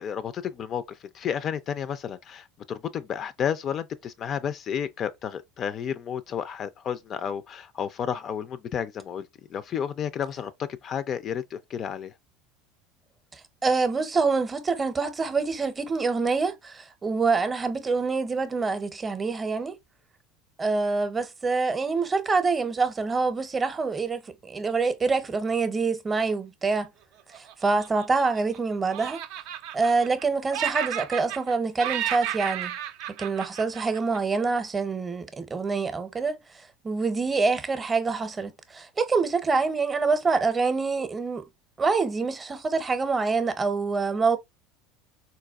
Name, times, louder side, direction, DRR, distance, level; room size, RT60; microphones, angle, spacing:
voice 1, 0.0-9.3 9.5-10.5 10.8-12.1, left 8 dB, 45° left, 0.3 m, -31 dB
voice 2, 13.3-19.7 20.6-26.9 27.3-29.2 29.7-32.7 33.2-36.4 36.8-41.4 41.8-44.4, right 4 dB, 25° right, 0.6 m, -26 dB
Laughter, 27.3-28.6 28.9-30.2 30.5-31.5 31.8-34.4, right 11 dB, 65° right, 0.4 m, -33 dB
4.0 x 2.2 x 2.3 m
hypercardioid pair, 85°, 0 cm